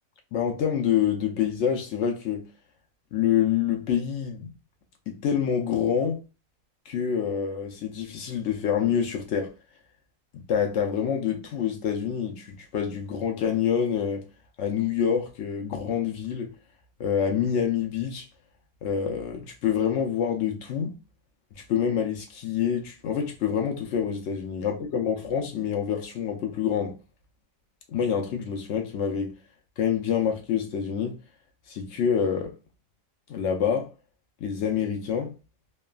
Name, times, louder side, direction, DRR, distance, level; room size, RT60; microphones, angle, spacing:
voice 1, 0.3-2.5 3.1-4.5 5.1-6.2 6.9-9.5 10.3-14.3 14.6-16.5 17.0-18.3 18.8-21.0 21.6-27.0 27.9-29.4 29.8-31.2 31.7-32.5 33.3-33.9 34.4-35.3, left 8 dB, 65° left, 0.8 m, -27 dB
3.2 x 2.2 x 2.2 m
omnidirectional pair, 1.4 m